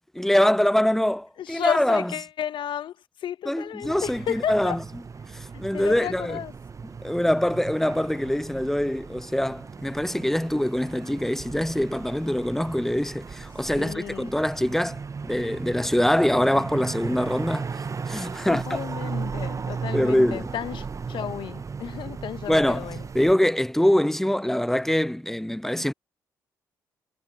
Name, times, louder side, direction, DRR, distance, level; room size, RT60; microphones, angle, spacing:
voice 1, 0.1-2.1 3.5-4.8 5.6-6.4 7.0-15.0 15.3-18.8 19.9-20.5 22.5-25.9, left 1 dB, 5° left, 0.6 m, -24 dB
voice 2, 1.4-4.8 5.7-6.5 13.8-14.4 18.5-23.0, left 10 dB, 60° left, 1.3 m, -33 dB
sound 1, 3.8-23.3, right 5 dB, 35° right, 0.9 m, -36 dB
hypercardioid pair, 45°, 9 cm